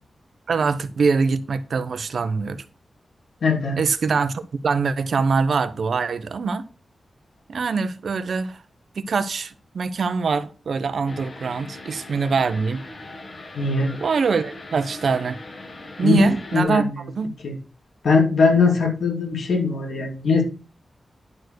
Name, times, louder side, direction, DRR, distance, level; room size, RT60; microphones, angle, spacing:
voice 1, 0.5-2.6 3.8-6.7 7.5-8.6 9.0-12.8 14.0-15.4 16.0-16.8 17.1-17.3, right 5 dB, 65° right, 0.8 m, -23 dB
voice 2, 3.4-3.8 13.5-13.9 16.0-16.9 17.4-17.5 18.0-20.4, left 4 dB, 80° left, 2.8 m, -20 dB
sound 1, 11.1-16.6, left 2 dB, 40° left, 1.9 m, -40 dB
11.0 x 4.7 x 6.2 m
wide cardioid pair, 170°, 0 cm